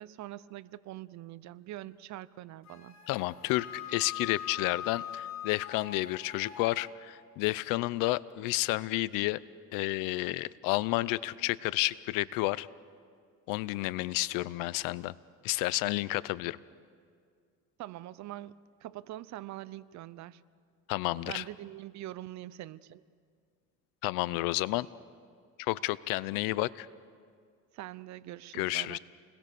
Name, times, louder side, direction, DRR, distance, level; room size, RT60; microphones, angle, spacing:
voice 1, 0.0-2.9 17.8-20.4 21.2-23.0 27.7-29.0, right 14 dB, 60° right, 18 dB, 0.7 m, -44 dB
Wind instrument woodwind instrument, 2.6-6.7, left 10 dB, 55° left, 4.2 m, -42 dB
voice 2, 3.1-9.4 9.7-12.7 13.5-15.1 15.4-16.6 20.9-21.4 24.0-24.9 25.6-26.9 28.5-29.0, left 19 dB, 85° left, 19 dB, 0.7 m, -31 dB
29.0 x 21.0 x 6.9 m, 2.1 s
cardioid pair, 120°, 32 cm